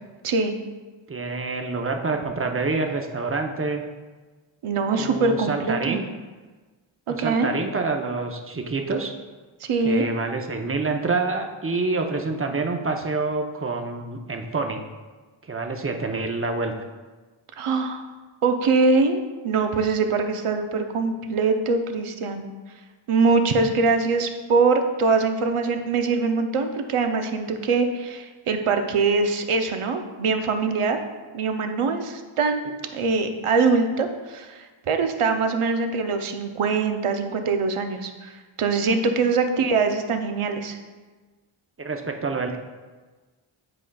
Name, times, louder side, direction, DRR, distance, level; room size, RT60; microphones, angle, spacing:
voice 1, 0.2-0.5 4.6-6.0 7.1-7.5 9.6-10.1 17.6-18.1 18.4-22.4 23.1-31.0 31.3-40.8, right 4 dB, 80° right, 6 dB, 0.7 m, -23 dB
voice 2, 1.1-3.8 5.0-6.0 7.1-9.1 9.8-14.8 15.5-16.7 39.4-39.6 41.8-42.6, right 3 dB, 25° right, 4 dB, 0.7 m, -27 dB
9.7 x 4.9 x 2.3 m, 1.3 s
wide cardioid pair, 55°, 50 cm